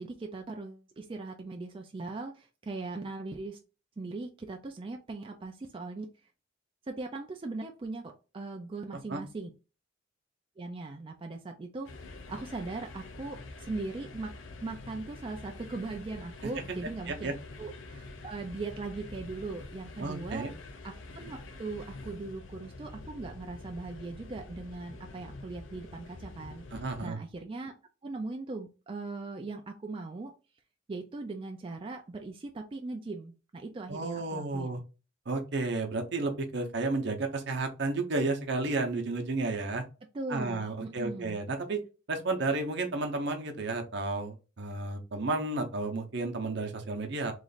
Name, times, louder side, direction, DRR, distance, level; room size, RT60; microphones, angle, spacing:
voice 1, 0.0-3.6 4.0-6.1 6.9-9.5 10.6-12.0 12.3-14.3 14.6-20.5 20.8-27.7 28.0-30.3 30.9-34.8 40.1-41.4, right 3 dB, 25° right, 3 dB, 0.4 m, -39 dB
sound 1, 11.8-27.1, left 2 dB, 80° left, 0.6 m, -46 dB
voice 2, 20.0-20.5 26.7-27.2 33.9-34.8 35.3-39.8 40.3-41.8 42.1-47.3, right 3 dB, 65° right, 4 dB, 0.7 m, -32 dB
3.1 x 2.5 x 3.9 m, 0.32 s
head